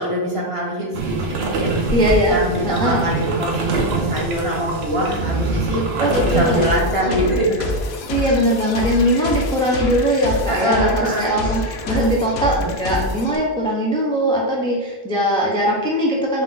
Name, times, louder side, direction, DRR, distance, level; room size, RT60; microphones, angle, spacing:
voice 1, 0.0-1.9 2.3-7.5 10.5-11.3, equal, 35° right, -4 dB, 0.9 m, -23 dB
sound 1, 0.9-6.7, right 3 dB, 75° right, 0.9 m, -24 dB
voice 2, 1.9-2.3 2.6-3.1 5.7-6.7 8.1-16.4, equal, 10° left, -3 dB, 0.3 m, -20 dB
sound 2, 6.1-13.4, left 3 dB, 80° left, 0.8 m, -26 dB
3.8 x 2.5 x 3.7 m, 1.3 s
omnidirectional pair, 1.1 m